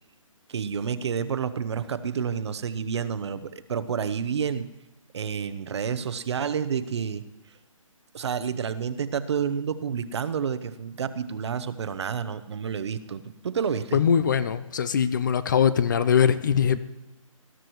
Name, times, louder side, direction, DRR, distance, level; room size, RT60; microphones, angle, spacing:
voice 1, 0.5-4.7 5.1-7.2 8.1-14.0, right 7 dB, 55° right, 13 dB, 0.8 m, -29 dB
voice 2, 13.9-16.8, left 7 dB, 35° left, 15 dB, 0.5 m, -22 dB
19.5 x 13.0 x 3.1 m, 0.97 s
hypercardioid pair, 160°, 17 cm